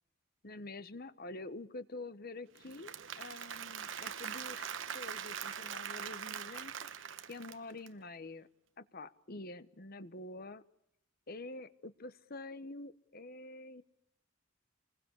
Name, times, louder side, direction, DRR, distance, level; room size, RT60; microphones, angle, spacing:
voice 1, 0.4-8.5 8.8-10.6 11.3-13.8, left 2 dB, 45° left, 13 dB, 1.2 m, -47 dB
Applause / Crowd, 2.5-7.9, right 8 dB, 65° right, 1.1 m, -42 dB
28.5 x 21.0 x 8.3 m, 0.77 s
head